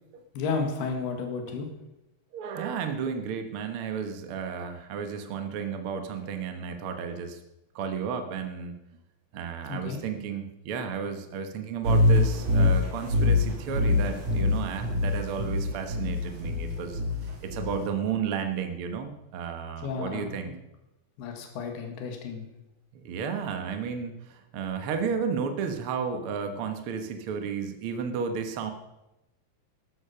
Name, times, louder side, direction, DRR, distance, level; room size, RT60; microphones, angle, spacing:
voice 1, 0.3-1.7 9.7-10.0 19.8-20.5 21.2-22.5, left 4 dB, 80° left, 3 dB, 3.8 m, -32 dB
voice 2, 2.3-7.4 7.7-8.7 9.3-17.0 17.4-20.5 22.9-28.7, right 6 dB, 75° right, 6 dB, 1.2 m, -33 dB
sound 1, 11.8-17.9, left 2 dB, 45° right, 3.3 m, -24 dB
14.0 x 12.0 x 5.8 m, 0.93 s
omnidirectional pair, 4.5 m